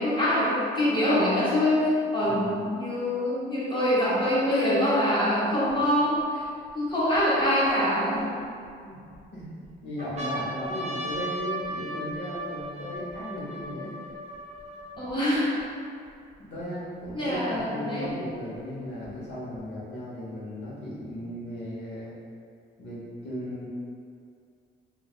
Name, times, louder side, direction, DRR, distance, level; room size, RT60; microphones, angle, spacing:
voice 1, 0.0-6.5 6.7-8.2 15.0-15.6 17.1-18.1, left 1 dB, 25° left, -8 dB, 0.7 m, -24 dB
sound 1, 5.7-5.8 6.4-7.7 8.4-9.2 9.6-9.7 10.0-15.6 16.3-16.4 16.6-17.6 18.5-19.6, right 1 dB, 35° right, 0.6 m, -37 dB
voice 2, 9.8-13.9 16.4-22.1 22.8-23.7, equal, 65° left, -7 dB, 1.0 m, -36 dB
3.1 x 2.4 x 2.3 m, 2.3 s
cardioid pair, 90°, 20 cm